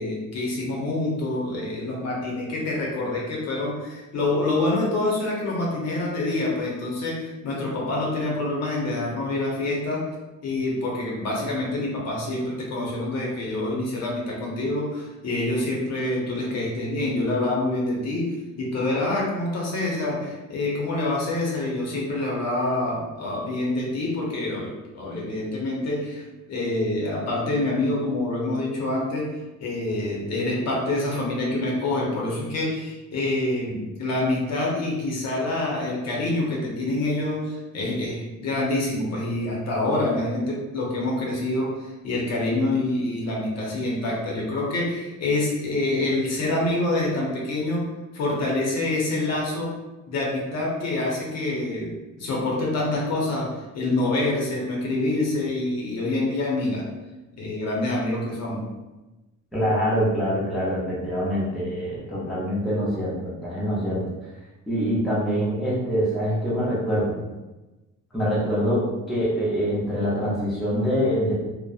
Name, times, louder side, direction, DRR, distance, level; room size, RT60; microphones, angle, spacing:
voice 1, 0.0-10.0 10.4-26.2 26.5-29.3 29.6-47.8 48.1-49.7 50.1-53.5 53.7-56.8 57.4-58.7, left 2 dB, 55° left, -3 dB, 0.7 m, -26 dB
voice 2, 59.5-64.0 64.7-67.1 68.1-71.3, equal, ahead, -9 dB, 0.4 m, -24 dB
2.7 x 2.1 x 2.3 m, 1.1 s
cardioid pair, 180°, 32 cm